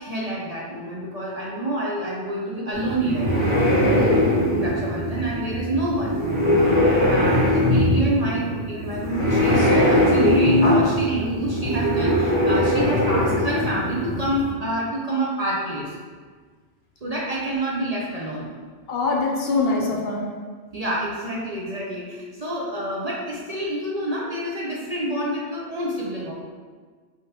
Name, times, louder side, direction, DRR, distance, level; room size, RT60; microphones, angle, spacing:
voice 1, 0.0-3.3 4.5-6.2 7.1-16.0 17.0-18.5 20.7-26.3, right 1 dB, 45° right, -5 dB, 0.6 m, -28 dB
sound 1, 2.7-14.5, left 1 dB, 65° right, 1.7 m, -21 dB
voice 2, 3.8-4.3 18.9-20.3, left 3 dB, 60° left, -1 dB, 0.8 m, -24 dB
4.7 x 3.6 x 2.8 m, 1.5 s
omnidirectional pair, 1.2 m